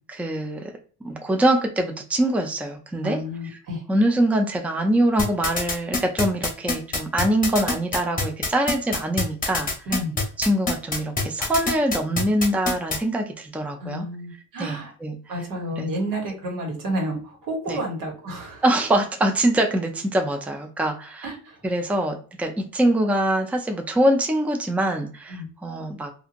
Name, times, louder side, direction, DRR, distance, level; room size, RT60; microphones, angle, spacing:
voice 1, 0.1-0.7 1.0-3.2 3.9-9.7 10.4-14.1 14.6-15.2 15.8-15.9 17.7-17.8 18.6-21.3 21.6-26.1, right 1 dB, 5° right, 4 dB, 0.4 m, -23 dB
voice 2, 3.0-3.8 9.9-10.1 13.8-14.9 15.3-18.6 21.2-21.6 25.3-25.5, equal, 85° right, 0 dB, 1.3 m, -30 dB
sound 1, 5.2-13.0, left 3 dB, 25° left, 0.9 m, -24 dB
2.8 x 2.5 x 2.5 m, 0.40 s
cardioid pair, 120°, 31 cm